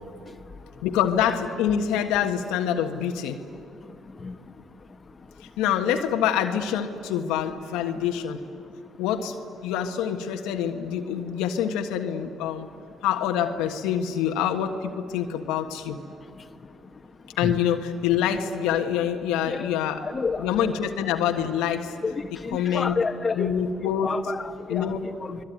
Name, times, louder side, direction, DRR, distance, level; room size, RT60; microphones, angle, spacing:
voice 1, 0.8-3.4 5.4-8.4 9.0-9.4 9.6-12.7 13.0-16.0 17.4-20.0 20.4-22.0 22.3-23.0 23.3-24.1 24.7-25.1, left 9 dB, 85° left, 5 dB, 1.5 m, -26 dB
voice 2, 20.0-20.5 22.0-23.6 24.0-24.9 25.2-25.4, left 4 dB, 35° left, 6 dB, 1.6 m, -29 dB
25.5 x 21.5 x 9.5 m, 2.6 s
supercardioid pair, 65°, 0 cm